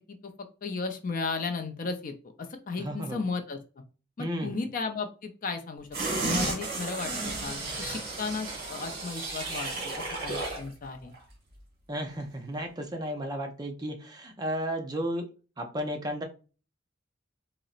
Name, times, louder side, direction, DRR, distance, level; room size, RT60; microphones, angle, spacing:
voice 1, 0.6-3.6 4.2-5.9 6.2-11.1, left 4 dB, 45° left, 7 dB, 0.4 m, -35 dB
voice 2, 2.8-3.2 4.2-4.6 11.9-15.2 15.6-16.2, equal, 20° right, 3 dB, 0.5 m, -33 dB
sound 1, 5.9-10.7 11.0-11.1, right 3 dB, 50° right, 1.2 m, -33 dB
3.9 x 2.0 x 2.4 m, 0.35 s
head